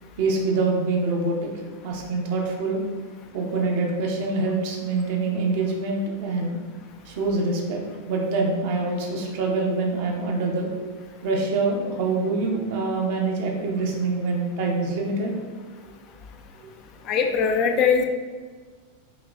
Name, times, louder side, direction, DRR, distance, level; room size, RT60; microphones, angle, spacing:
voice 1, 0.2-1.5 1.8-2.8 3.3-6.6 7.1-10.7 11.2-15.3 16.6-16.7, right 3 dB, 50° right, 0 dB, 0.8 m, -25 dB
voice 2, 17.1-18.0, left 6 dB, 35° left, 5 dB, 0.4 m, -21 dB
4.9 x 3.0 x 2.5 m, 1.5 s
figure-of-eight pair, 90°, 0 cm